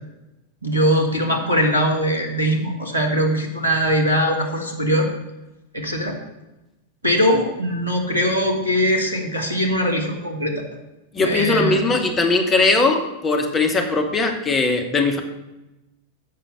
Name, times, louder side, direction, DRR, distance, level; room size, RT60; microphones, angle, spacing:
voice 1, 0.6-5.1 5.7-6.2 7.0-10.6 11.2-11.8, equal, 90° right, 0 dB, 1.7 m, -21 dB
voice 2, 11.1-15.2, left 3 dB, 20° left, 5 dB, 1.2 m, -19 dB
7.7 x 5.7 x 7.0 m, 0.98 s
figure-of-eight pair, 90°, 0 cm